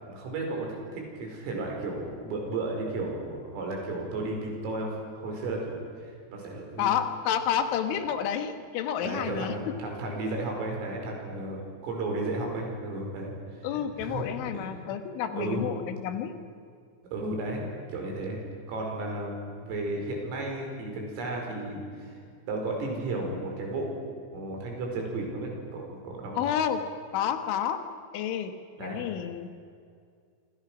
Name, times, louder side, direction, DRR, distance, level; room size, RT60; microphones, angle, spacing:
voice 1, 0.0-6.9 8.0-8.1 9.0-13.3 14.0-14.9 15.3-15.7 17.1-17.6 17.9-18.4 18.7-22.1 22.5-24.0 24.3-26.4 28.8-29.0, right 2 dB, 80° right, 1 dB, 7.7 m, -34 dB
voice 2, 6.8-9.6 13.6-16.3 26.4-26.8 27.1-27.8 28.1-29.5, left 9 dB, 75° left, 8 dB, 3.7 m, -30 dB
27.0 x 26.5 x 6.2 m, 2.2 s
omnidirectional pair, 5.8 m